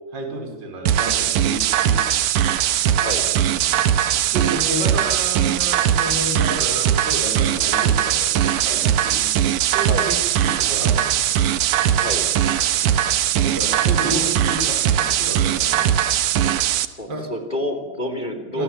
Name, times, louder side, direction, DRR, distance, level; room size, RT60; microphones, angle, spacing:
voice 1, 0.1-2.2 3.6-4.0 4.3-9.3 9.7-11.3 13.4-16.0 17.1-17.3 18.5-18.6, right 1 dB, 25° right, 3 dB, 5.1 m, -31 dB
sound 1, 0.9-16.9, right 10 dB, 75° right, 1.8 m, -20 dB
voice 2, 16.9-18.6, equal, 15° left, 7 dB, 2.6 m, -28 dB
29.0 x 23.0 x 7.4 m, 1.2 s
omnidirectional pair, 4.9 m